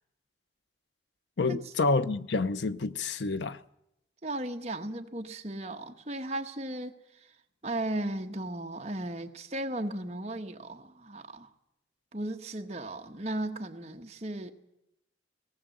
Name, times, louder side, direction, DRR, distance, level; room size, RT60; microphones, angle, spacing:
voice 1, 1.4-3.6, left 3 dB, 75° left, 0.7 m, -28 dB
voice 2, 4.2-7.0 7.6-11.5 12.1-14.5, right 1 dB, 35° right, 1.3 m, -36 dB
18.5 x 18.5 x 7.9 m
head